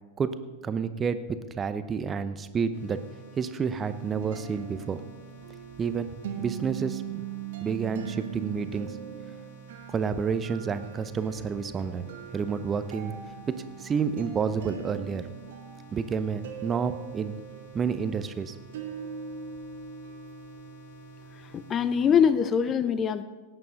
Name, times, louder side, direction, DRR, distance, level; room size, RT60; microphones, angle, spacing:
voice 1, 0.6-1.2 1.5-3.0 3.4-5.0 5.8-7.2 7.6-9.0 9.9-13.1 13.5-15.3 15.9-17.3 17.7-18.6, right 6 dB, 20° right, 12 dB, 0.7 m, -30 dB
sound 1, 2.7-22.3, right 3 dB, 70° left, 4.1 m, -50 dB
sound 2, 4.0-22.0, right 8 dB, 55° right, 1.2 m, -42 dB
voice 2, 21.5-23.2, left 7 dB, 25° left, 14 dB, 0.6 m, -23 dB
17.5 x 9.2 x 3.9 m, 1.2 s
figure-of-eight pair, 90°, 0 cm